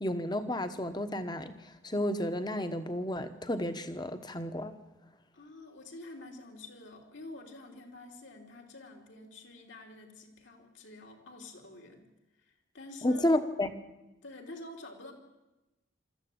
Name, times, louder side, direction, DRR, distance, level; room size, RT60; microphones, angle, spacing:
voice 1, 0.0-4.7 13.0-13.7, left 1 dB, 20° left, 10 dB, 1.1 m, -31 dB
voice 2, 5.3-12.1 12.4-13.4 14.2-15.1, left 2 dB, 65° left, 1 dB, 3.4 m, -48 dB
22.5 x 14.0 x 8.7 m, 1.0 s
head